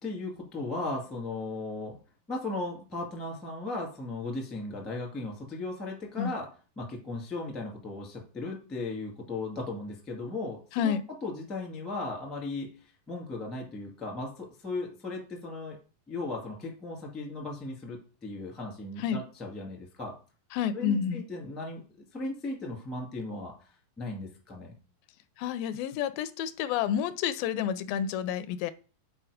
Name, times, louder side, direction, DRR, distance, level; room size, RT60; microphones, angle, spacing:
voice 1, 0.0-2.0 2.3-6.5 6.8-10.9 11.2-12.7 13.1-15.8 16.1-20.2 20.7-23.5 24.0-24.7, left 2 dB, ahead, 0 dB, 0.7 m, -36 dB
voice 2, 20.5-21.2 25.4-28.7, left 9 dB, 80° left, 13 dB, 2.2 m, -29 dB
7.9 x 4.5 x 4.8 m, 0.36 s
omnidirectional pair, 4.2 m